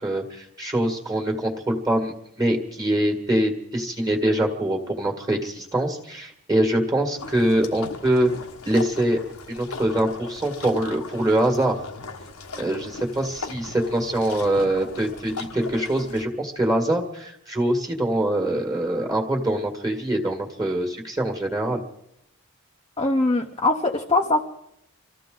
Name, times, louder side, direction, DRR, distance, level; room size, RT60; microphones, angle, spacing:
voice 1, 0.0-8.3 8.7-9.2 9.5-11.8 12.6-21.8, right 1 dB, 15° right, 2 dB, 1.8 m, -24 dB
sound 1, 7.2-16.3, left 3 dB, 85° left, 1.5 m, -38 dB
voice 2, 23.0-24.4, left 2 dB, 20° left, 0 dB, 0.9 m, -21 dB
25.5 x 14.5 x 3.9 m, 0.80 s
head